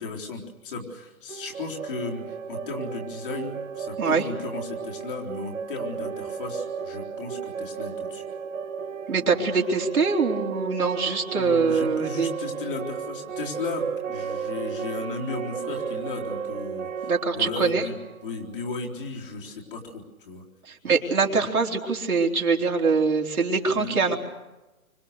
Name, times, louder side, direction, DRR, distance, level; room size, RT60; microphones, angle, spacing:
voice 1, 0.0-8.2 11.3-18.0 18.2-20.4 23.7-24.2, left 3 dB, 35° left, -1 dB, 4.1 m, -35 dB
sound 1, 1.3-19.1, right 7 dB, 55° right, 1.3 m, -34 dB
voice 2, 9.1-12.3 17.0-17.8 20.7-24.2, right 4 dB, 75° right, 0 dB, 3.8 m, -23 dB
26.5 x 25.5 x 6.8 m, 1.1 s
hypercardioid pair, 165°, 43 cm